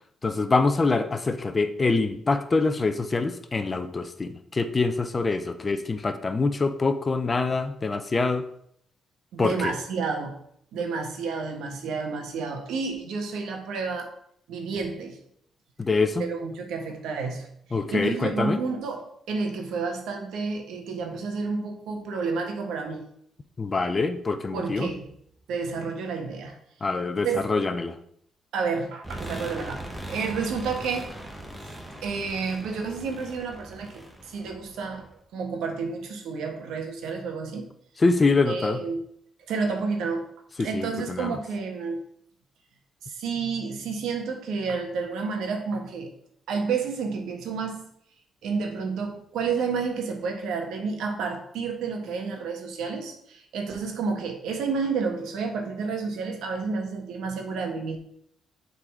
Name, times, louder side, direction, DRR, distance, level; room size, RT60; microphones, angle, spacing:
voice 1, 0.2-8.4 9.4-9.7 15.8-16.2 17.7-18.6 23.6-24.9 26.8-28.0 38.0-38.8 40.6-41.4, left 3 dB, 30° left, 9 dB, 0.6 m, -25 dB
voice 2, 9.3-10.4 10.7-14.1 14.5-15.2 16.2-17.5 17.9-23.1 24.5-25.0 25.5-26.6 27.2-27.4 28.5-31.1 32.0-37.7 38.5-39.0 39.5-40.3 40.6-42.0 43.0-46.1 46.5-47.8 48.4-58.0, right 4 dB, 80° right, 4 dB, 1.4 m, -30 dB
sound 1, 29.0-35.1, right 1 dB, 5° right, 1.3 m, -40 dB
7.2 x 4.1 x 4.9 m, 0.69 s
cardioid pair, 90°, 0 cm